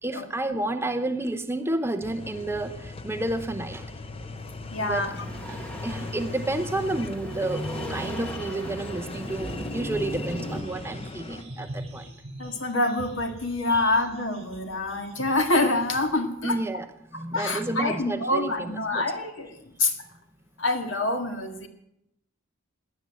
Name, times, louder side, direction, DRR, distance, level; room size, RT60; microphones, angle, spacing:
voice 1, 0.0-3.9 4.8-5.1 5.5-12.0 13.7-13.9 16.4-19.0, right 2 dB, 10° right, 7 dB, 0.7 m, -31 dB
sound 1, 2.0-11.4, left 2 dB, 30° left, 0.8 m, -39 dB
voice 2, 4.7-5.1 12.4-16.6 17.1-19.9 20.6-21.7, left 2 dB, 65° left, 5 dB, 2.1 m, -26 dB
sound 2, 5.0-10.6, equal, 5° left, 1.7 m, -36 dB
sound 3, 10.4-16.1, right 1 dB, 30° right, 6.5 m, -44 dB
18.0 x 10.0 x 7.7 m, 0.82 s
head